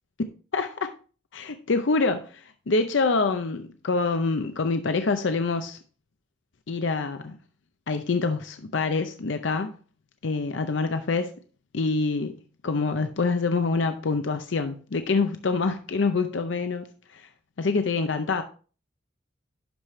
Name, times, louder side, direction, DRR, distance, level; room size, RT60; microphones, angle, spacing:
voice 1, 0.5-0.9 1.3-5.8 6.7-7.4 7.9-9.8 10.2-11.3 11.7-12.4 12.6-16.9 17.1-17.2 17.6-18.4, left 4 dB, 65° left, 0.6 m, -26 dB
11.5 x 4.9 x 3.2 m
head